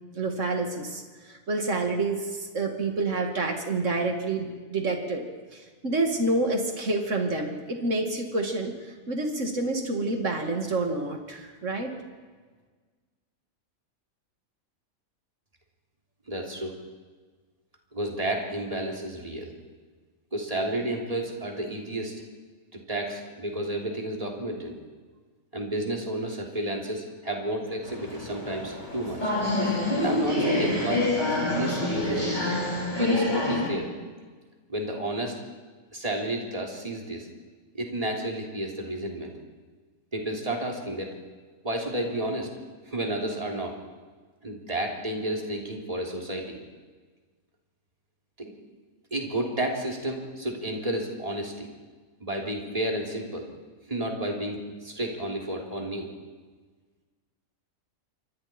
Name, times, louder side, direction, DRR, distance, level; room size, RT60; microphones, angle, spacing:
voice 1, 0.1-5.2 5.5-11.9, right 2 dB, 60° right, 3 dB, 2.7 m, -28 dB
voice 2, 16.3-16.8 17.9-19.5 20.3-22.1 22.9-24.7 25.5-29.3 30.0-31.1 31.4-32.4 32.9-33.9 34.7-35.4 35.9-37.3 37.7-39.3 40.1-41.1 41.6-42.5 42.9-43.8 44.4-46.6 48.4-48.5 49.1-51.7 52.2-53.5 53.9-56.1, right 1 dB, 25° right, 0 dB, 3.3 m, -31 dB
sound 1, 27.8-33.7, left 2 dB, 30° left, 4.4 m, -27 dB
27.5 x 24.0 x 4.5 m, 1.4 s
omnidirectional pair, 1.5 m